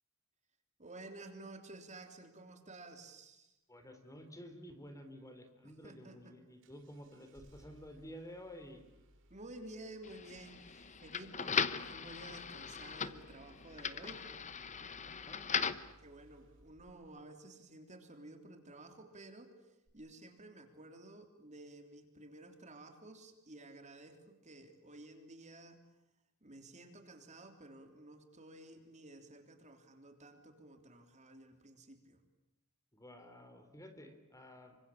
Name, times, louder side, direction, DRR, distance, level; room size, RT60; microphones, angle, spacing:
voice 1, 0.8-3.6 5.6-6.3 9.3-14.4 16.0-19.5 19.9-25.8 26.4-32.2, right 2 dB, 35° right, 6 dB, 3.4 m, -53 dB
voice 2, 3.7-8.8 15.2-15.5 32.9-34.8, equal, 15° left, 7 dB, 3.7 m, -52 dB
Engine starting, 6.6-17.2 19.9-20.0, right 1 dB, 65° right, 5.3 m, -64 dB
sound 1, 10.0-15.9, left 6 dB, 35° left, 1.1 m, -39 dB
27.5 x 25.0 x 8.6 m, 0.88 s
head